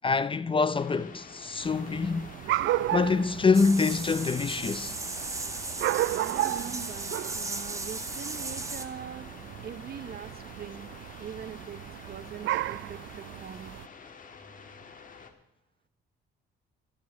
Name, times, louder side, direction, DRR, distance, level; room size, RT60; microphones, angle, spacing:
voice 1, 0.0-2.3 2.9-5.0, left 4 dB, 25° left, 0.5 m, -25 dB
sound 1, 0.8-15.3, left 5 dB, 40° left, 1.6 m, -49 dB
sound 2, 1.6-13.9, right 14 dB, 75° right, 0.4 m, -34 dB
sound 3, 3.5-8.9, right 2 dB, 15° right, 1.1 m, -36 dB
voice 2, 6.2-9.3 9.6-10.9 11.2-11.8 12.1-13.8, right 8 dB, 50° right, 0.8 m, -42 dB
13.5 x 6.7 x 8.0 m
cardioid pair, 90°, 20 cm